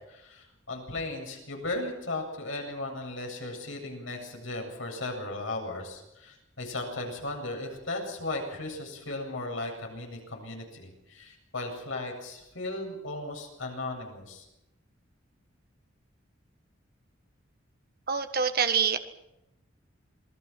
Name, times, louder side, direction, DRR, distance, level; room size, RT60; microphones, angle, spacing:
voice 1, 0.1-14.4, left 2 dB, 80° left, 2 dB, 7.9 m, -36 dB
voice 2, 18.1-19.0, right 6 dB, 50° right, 8 dB, 1.6 m, -25 dB
27.5 x 20.5 x 6.1 m, 0.89 s
head